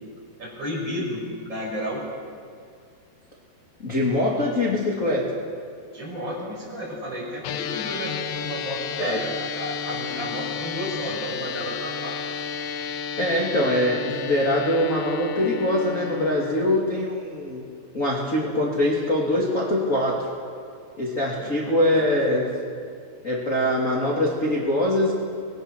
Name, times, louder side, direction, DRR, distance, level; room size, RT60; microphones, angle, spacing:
voice 1, 0.4-2.1 5.9-12.2 21.4-22.1, equal, 25° right, -3 dB, 6.2 m, -32 dB
voice 2, 3.8-5.3 8.9-9.2 13.2-17.6 17.9-20.3 21.0-22.4 23.2-25.1, left 1 dB, 20° left, -3 dB, 2.6 m, -23 dB
sound 1, 7.4-16.8, left 6 dB, 80° left, 3.2 m, -32 dB
26.0 x 21.0 x 6.4 m, 2.3 s
omnidirectional pair, 4.9 m